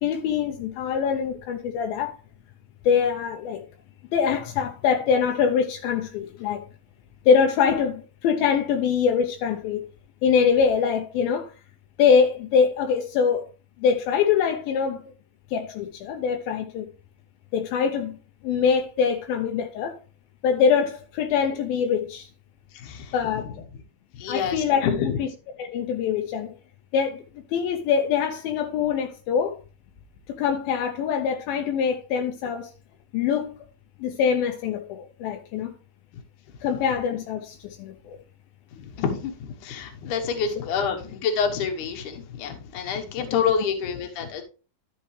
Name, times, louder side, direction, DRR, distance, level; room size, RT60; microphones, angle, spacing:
voice 1, 0.0-2.2 2.9-3.6 4.1-6.7 7.3-9.9 10.2-11.5 12.0-13.5 13.8-15.1 15.5-16.9 17.5-18.2 18.4-20.0 20.4-22.3 23.1-23.6 24.3-25.3 25.6-26.5 26.9-27.2 27.5-29.6 30.4-32.7 33.1-33.6 34.0-35.7 36.6-38.2 43.3-43.4, left 6 dB, 80° left, 2.5 m, -23 dB
voice 2, 22.7-23.5 24.1-25.2 38.8-44.4, left 6 dB, 65° left, 2.5 m, -28 dB
12.0 x 5.7 x 3.2 m
omnidirectional pair, 4.2 m